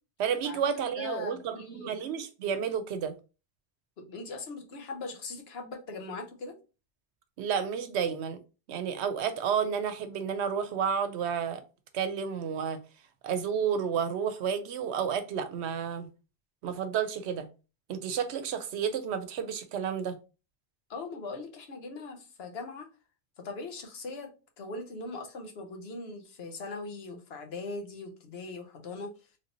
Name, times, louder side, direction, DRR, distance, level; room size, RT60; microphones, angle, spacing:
voice 1, 0.2-3.2 7.4-8.4 8.7-11.6 11.9-12.8 13.2-16.1 16.6-17.5 17.9-20.2, right 7 dB, 85° right, 0.9 m, -31 dB
voice 2, 1.0-2.0 4.0-6.6 20.9-22.9 23.4-24.3 24.6-29.1, left 3 dB, 70° left, 1.0 m, -40 dB
3.2 x 2.6 x 2.8 m
omnidirectional pair, 1.1 m